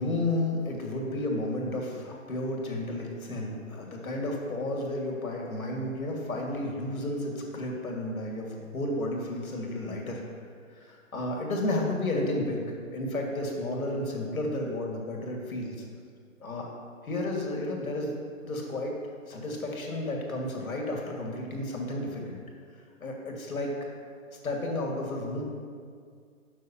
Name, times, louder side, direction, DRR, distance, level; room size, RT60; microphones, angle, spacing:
voice 1, 0.0-10.2 10.7-15.8 16.4-16.7 17.0-19.0 19.3-22.4 23.0-23.7 24.4-25.4, left 1 dB, 85° left, 0 dB, 2.0 m, -32 dB
12.0 x 6.4 x 2.8 m, 2.1 s
hypercardioid pair, 165°, 41 cm